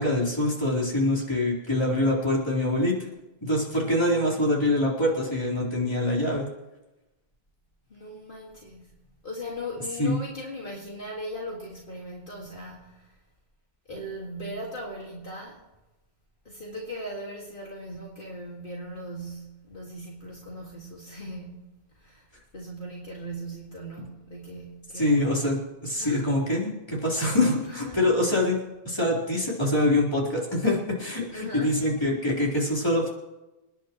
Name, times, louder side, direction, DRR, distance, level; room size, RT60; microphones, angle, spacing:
voice 1, 0.0-2.9 3.4-6.5 10.0-10.2 24.9-28.6 28.8-33.1, left 1 dB, 25° left, -5 dB, 4.0 m, -24 dB
voice 2, 7.9-8.9 9.2-13.1 13.9-15.6 16.5-22.3 22.5-25.2 26.0-26.3 26.9-27.0 27.6-28.0 31.3-31.7, equal, 55° left, -3 dB, 2.2 m, -39 dB
28.0 x 10.5 x 3.1 m, 1.0 s
omnidirectional pair, 1.0 m